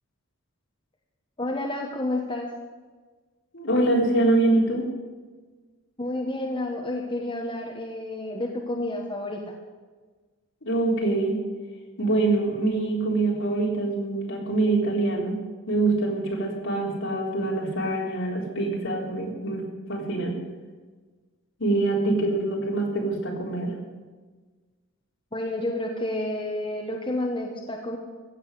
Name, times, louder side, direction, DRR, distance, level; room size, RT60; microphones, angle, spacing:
voice 1, 1.4-2.5 6.0-9.6 25.3-28.0, left 1 dB, 20° left, 0 dB, 1.3 m, -30 dB
voice 2, 3.5-4.8 10.6-11.4 12.0-15.4 15.7-19.6 19.9-20.4 21.6-23.7, right 2 dB, 60° left, -2 dB, 4.0 m, -24 dB
16.0 x 7.3 x 9.8 m, 1.4 s
head